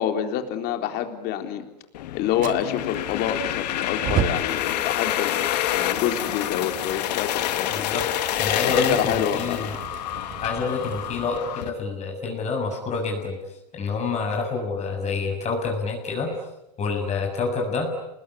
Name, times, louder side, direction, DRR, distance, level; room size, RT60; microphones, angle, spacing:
voice 1, 0.0-1.7 2.1-7.8 8.6-9.7, left 9 dB, 50° left, 6 dB, 3.8 m, -27 dB
sound 1, 1.9-11.7, left 12 dB, 75° left, 2.2 m, -28 dB
Fire, 2.4-11.4, right 9 dB, 40° right, 2.7 m, -35 dB
voice 2, 7.7-8.1 8.4-9.8 10.4-13.4 13.7-16.3 16.8-17.9, left 4 dB, 30° left, 2 dB, 6.9 m, -27 dB
29.0 x 20.5 x 9.9 m, 0.85 s
hypercardioid pair, 105°, 21 cm